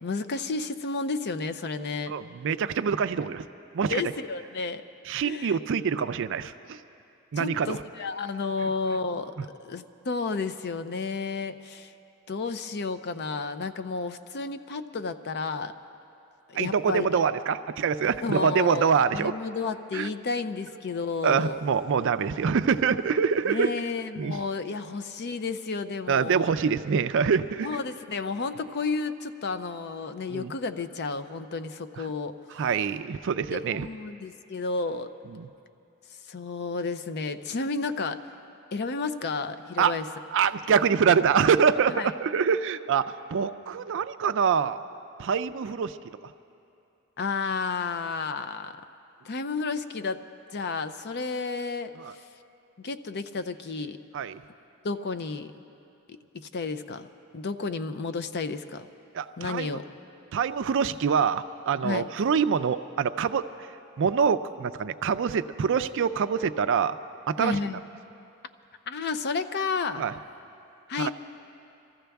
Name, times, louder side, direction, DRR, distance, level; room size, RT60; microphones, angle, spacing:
voice 1, 0.0-2.1 3.9-4.8 5.2-5.6 7.4-9.3 9.6-11.9 12.3-15.7 16.5-17.2 18.2-21.6 23.5-26.5 27.6-32.4 33.5-35.1 36.3-38.2 38.7-40.1 41.9-42.1 47.2-48.8 49.2-50.3 50.5-52.3 52.8-54.0 54.8-55.5 56.1-57.1 57.3-58.9 59.4-59.8 61.8-62.1 67.4-67.8 68.9-70.1 70.9-71.1, left 4 dB, 50° left, 11 dB, 0.5 m, -32 dB
voice 2, 2.1-3.4 3.7-4.0 5.1-6.8 7.3-7.8 16.6-19.3 19.9-20.1 21.2-23.7 24.2-24.4 26.1-27.8 30.3-30.5 32.6-33.9 35.3-35.5 39.8-39.9 40.3-44.8 45.2-46.0 52.0-52.1 54.1-54.4 59.1-59.7 60.3-63.4 64.0-67.0 67.3-67.6 70.0-70.1 71.0-71.1, right 6 dB, 55° right, 12 dB, 0.4 m, -25 dB
24.5 x 14.5 x 3.5 m, 2.7 s
head